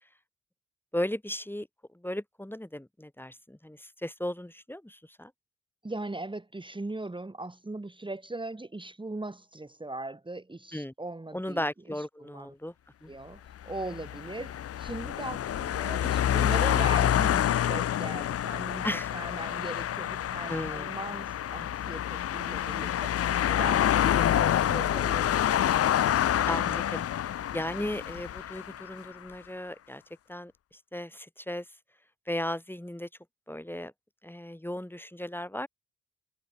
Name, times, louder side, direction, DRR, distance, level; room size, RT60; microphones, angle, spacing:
voice 1, 0.9-1.7 1.9-5.3 10.7-10.9 11.3-12.7 13.0-13.1 18.8-19.1 20.5-21.0 26.5-30.0 30.3-31.6 32.3-33.1 33.5-33.9 34.2-35.7, left 1 dB, 5° left, 3.2 m, -36 dB
voice 2, 5.8-12.5 13.1-18.8 19.1-25.6, right 2 dB, 15° right, 2.4 m, -39 dB
sound 1, 13.6-29.0, left 11 dB, 45° left, 0.8 m, -27 dB
hypercardioid pair, 45°, 32 cm